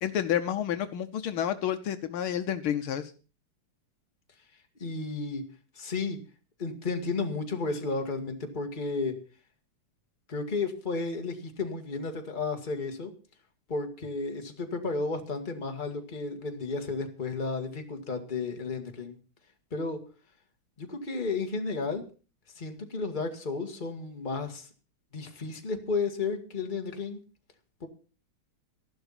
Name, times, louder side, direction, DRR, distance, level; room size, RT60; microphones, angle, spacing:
voice 1, 0.0-3.1, left 10 dB, 75° left, 10 dB, 1.7 m, -30 dB
voice 2, 4.8-5.4 5.8-6.2 6.6-9.2 10.3-13.1 13.7-19.2 19.7-20.0 20.8-22.0 22.6-24.7 25.1-27.2 27.8-27.9, left 4 dB, 25° left, 4 dB, 1.9 m, -33 dB
13.0 x 11.5 x 5.8 m, 0.36 s
omnidirectional pair, 2.4 m